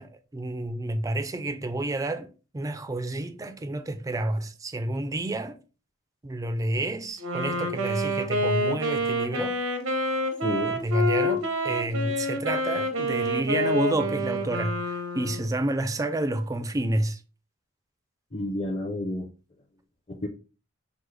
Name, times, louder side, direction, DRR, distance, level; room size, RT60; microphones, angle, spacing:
voice 1, 0.0-2.3 2.5-5.6 6.2-9.6 10.8-17.2, right 1 dB, 15° right, 0.3 m, -29 dB
Wind instrument woodwind instrument, 7.2-15.5, equal, 85° right, 0.8 m, -28 dB
voice 2, 10.4-10.8 18.3-19.3 20.1-20.3, left 1 dB, 30° left, 0.6 m, -30 dB
6.1 x 2.0 x 3.3 m
head